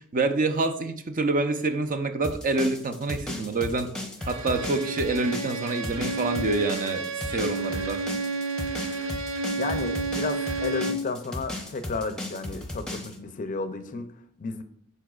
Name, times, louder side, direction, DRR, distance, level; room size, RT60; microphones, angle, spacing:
voice 1, 0.0-3.9 4.3-8.0, right 3 dB, 40° right, 8 dB, 0.6 m, -27 dB
sound 1, 2.2-13.1, left 1 dB, 5° left, 0.7 m, -35 dB
Bowed string instrument, 4.2-11.1, right 3 dB, 90° right, 0.6 m, -31 dB
voice 2, 9.6-14.6, left 3 dB, 40° left, 9 dB, 0.5 m, -33 dB
11.0 x 4.4 x 2.4 m, 0.67 s
head